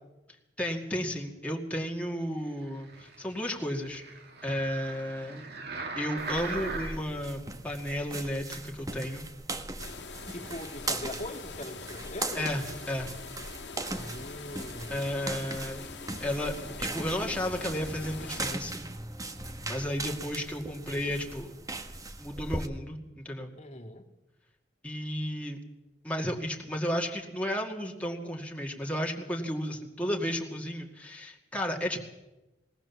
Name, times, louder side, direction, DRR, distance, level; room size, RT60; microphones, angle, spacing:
voice 1, 0.6-4.0 4.4-5.5 6.0-9.3 12.3-13.1 13.9-14.1 14.9-15.8 16.2-18.8 19.7-21.6 22.2-23.5 24.8-25.6 26.0-32.0, equal, 10° left, 0 dB, 2.2 m, -33 dB
sound 1, 2.6-7.2 7.8-7.9, right 3 dB, 65° right, 2.6 m, -40 dB
sound 2, 6.2-22.7, right 2 dB, 20° right, 1.2 m, -39 dB
sound 3, 9.8-18.6, left 5 dB, 75° left, 1.7 m, -44 dB
voice 2, 10.3-12.5 13.9-15.1 23.6-24.1, left 1 dB, 40° left, 6 dB, 2.0 m, -41 dB
20.5 x 18.5 x 7.1 m, 1.0 s
head